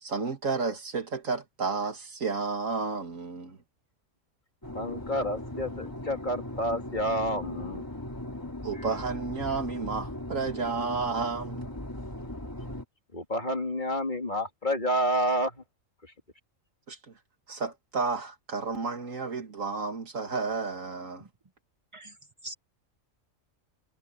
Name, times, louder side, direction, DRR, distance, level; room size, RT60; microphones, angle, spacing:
voice 1, 0.0-3.6 8.6-11.7 16.9-17.1 17.5-21.3, right 4 dB, 75° right, 2.7 m, -32 dB
sound 1, 4.6-12.9, left 1 dB, 15° left, 2.6 m, -38 dB
voice 2, 4.7-7.8 8.7-8.9 13.1-15.6 16.0-16.1, equal, 35° left, 3.0 m, -29 dB
voice 3, 21.9-22.5, right 2 dB, 30° right, 0.7 m, -43 dB
omnidirectional pair, 1.4 m